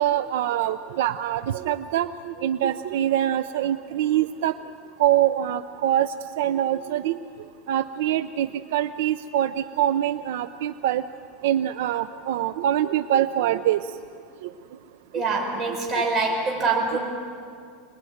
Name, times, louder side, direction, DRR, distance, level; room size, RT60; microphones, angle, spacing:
voice 1, 0.0-4.5 5.0-7.2 7.7-9.5 9.8-11.0 11.4-13.8, right 11 dB, 65° right, 11 dB, 0.6 m, -24 dB
voice 2, 15.1-17.0, right 3 dB, 25° right, -1 dB, 5.4 m, -24 dB
26.0 x 20.5 x 9.3 m, 2.3 s
supercardioid pair, 180°, 0 cm